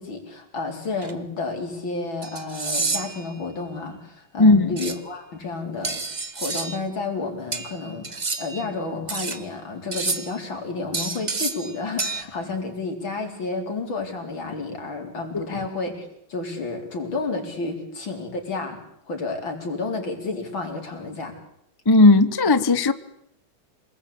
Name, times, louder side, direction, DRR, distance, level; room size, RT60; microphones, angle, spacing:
voice 1, 0.0-18.8 19.1-21.3, left 3 dB, 65° left, 4.9 m, -31 dB
sound 1, 1.0-1.1 2.2-3.3 4.8-5.0 5.8-6.8 7.5-8.6 9.1-9.4 9.9-10.4 10.9-11.7 12.0-12.2, right 3 dB, 25° right, 1.2 m, -29 dB
voice 2, 4.4-4.7 15.3-15.4 21.9-22.9, left 2 dB, 25° left, 0.5 m, -15 dB
27.0 x 20.5 x 8.5 m
omnidirectional pair, 2.3 m